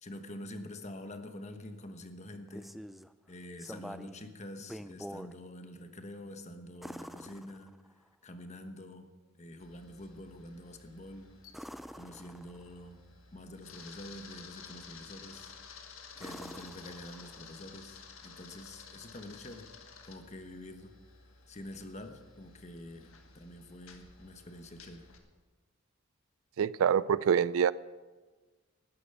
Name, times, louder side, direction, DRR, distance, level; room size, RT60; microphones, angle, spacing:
voice 1, 0.0-2.7 3.3-9.1 9.4-11.3 11.9-13.0 13.3-15.5 16.2-19.7 20.0-21.0 21.5-25.1, left 1 dB, 35° left, 7 dB, 1.1 m, -47 dB
sound 1, 2.3-3.1 3.6-4.2 4.6-5.3 6.8-8.1 11.5-12.8 15.3-15.7 16.2-17.6 19.7-19.8, equal, ahead, 0.3 m, -46 dB
Camera, 9.6-25.2, left 5 dB, 85° left, 1.6 m, -53 dB
voice 2, 26.6-27.7, right 7 dB, 80° right, 19 dB, 0.4 m, -26 dB
13.0 x 10.0 x 6.9 m, 1.3 s
head